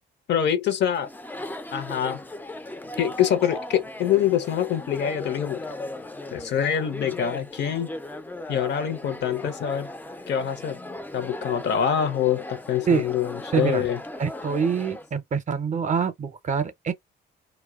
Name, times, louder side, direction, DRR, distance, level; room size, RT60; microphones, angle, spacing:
voice 1, 0.3-1.1 1.7-2.2 3.0-5.6 6.3-7.9 8.5-9.9 10.3-10.8 11.1-14.0, left 9 dB, 60° left, 0.6 m, -25 dB
Chatter, 0.9-15.1, left 1 dB, 10° left, 0.4 m, -37 dB
voice 2, 13.5-13.9 14.2-16.9, right 6 dB, 40° right, 0.5 m, -25 dB
2.5 x 2.1 x 2.3 m
cardioid pair, 90°, 20 cm